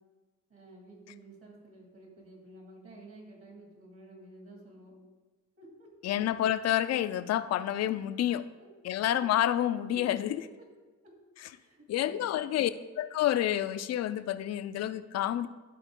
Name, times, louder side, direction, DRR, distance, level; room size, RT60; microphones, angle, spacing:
voice 1, 0.5-5.0 5.6-5.9 8.6-8.7 9.9-10.1 10.4-10.7 11.0-11.1 11.5-12.5, right 2 dB, 45° right, -1 dB, 2.5 m, -52 dB
voice 2, 6.0-8.4 8.8-10.4 11.9-12.7 13.0-15.5, left 12 dB, 55° left, 13 dB, 0.5 m, -29 dB
12.5 x 4.2 x 3.7 m, 1.3 s
cardioid pair, 90°, 30 cm